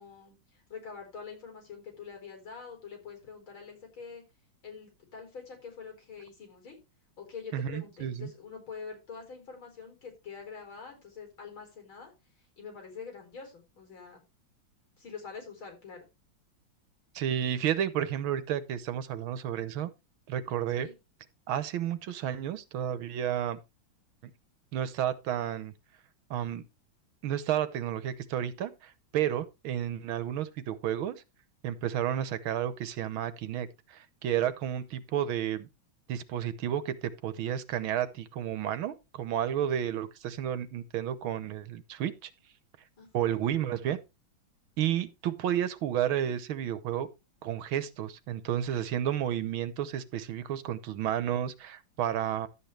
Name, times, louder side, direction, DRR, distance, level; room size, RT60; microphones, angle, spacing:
voice 1, 0.0-4.2 4.6-6.8 7.2-12.1 12.4-14.2 15.0-16.0 20.7-20.9 43.0-43.4, left 5 dB, 75° left, 5.0 m, -45 dB
voice 2, 7.5-8.3 17.2-19.9 20.3-20.9 21.5-23.6 24.2-24.3 24.7-25.7 26.3-26.6 27.2-31.1 31.6-35.7 36.1-42.3 43.1-44.0 44.8-47.1 47.4-52.5, right 10 dB, 80° right, 1.7 m, -31 dB
12.0 x 8.4 x 3.3 m
omnidirectional pair, 2.2 m